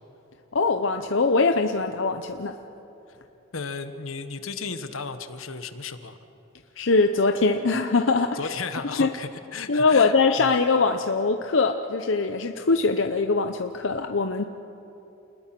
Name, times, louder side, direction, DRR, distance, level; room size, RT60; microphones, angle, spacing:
voice 1, 0.5-2.6 6.8-8.5 9.0-9.1 9.7-14.4, left 4 dB, 65° left, 6 dB, 0.8 m, -22 dB
voice 2, 3.5-6.2 8.3-10.5, left 4 dB, 85° left, 9 dB, 1.3 m, -34 dB
29.5 x 20.5 x 6.1 m, 3.0 s
head